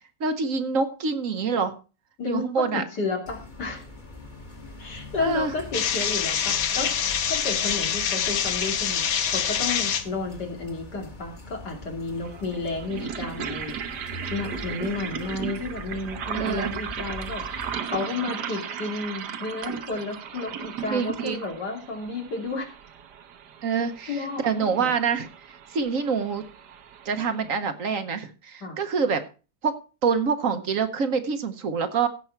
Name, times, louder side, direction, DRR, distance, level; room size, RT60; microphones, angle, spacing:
voice 1, 0.2-1.7 2.2-2.8 5.2-5.5 16.3-16.7 20.9-21.4 23.6-25.3 25.7-26.4 27.0-29.2 29.6-29.8 30.0-32.1, right 5 dB, 55° right, 9 dB, 1.3 m, -26 dB
voice 2, 2.7-3.8 4.8-13.7 14.3-22.7 23.7-24.9 28.6-28.8, left 3 dB, 80° left, 2 dB, 3.3 m, -32 dB
sound 1, 3.3-17.8, left 2 dB, 30° left, 2.1 m, -42 dB
sound 2, 5.7-10.0, left 8 dB, 65° left, 1.3 m, -25 dB
sound 3, 11.2-11.3 12.2-27.6, right 8 dB, 85° right, 1.6 m, -36 dB
16.5 x 6.1 x 4.5 m, 0.34 s
omnidirectional pair, 1.8 m